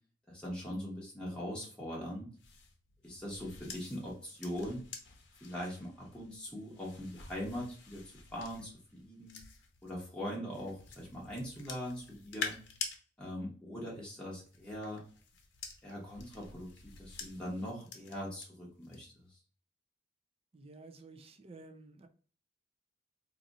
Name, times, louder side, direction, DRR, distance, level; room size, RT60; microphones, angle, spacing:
voice 1, 0.3-2.3 3.0-4.8 5.4-8.0 8.3-9.4 9.8-12.6 13.2-15.0 15.8-19.4, equal, 5° left, -5 dB, 0.9 m, -41 dB
sound 1, 2.4-9.9 10.5-13.0 14.2-18.5 18.8-19.2, left 5 dB, 80° left, 0.7 m, -47 dB
voice 2, 20.5-22.1, right 3 dB, 30° right, 9 dB, 0.4 m, -52 dB
2.7 x 2.5 x 3.9 m, 0.40 s
head